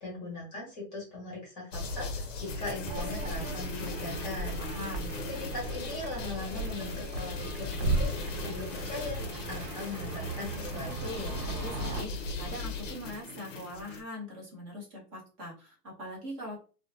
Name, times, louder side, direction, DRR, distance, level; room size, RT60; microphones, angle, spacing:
voice 1, 0.0-4.6 5.3-9.2 9.5-11.3, left 3 dB, 25° left, -4 dB, 1.0 m, -40 dB
sound 1, 1.7-14.0, left 3 dB, 50° left, 0.6 m, -39 dB
sound 2, 2.9-12.0, right 3 dB, 90° right, 0.9 m, -36 dB
voice 2, 4.6-5.2 11.5-16.6, equal, 15° right, -3 dB, 0.6 m, -42 dB
2.6 x 2.1 x 2.6 m, 0.36 s
hypercardioid pair, 160°, 48 cm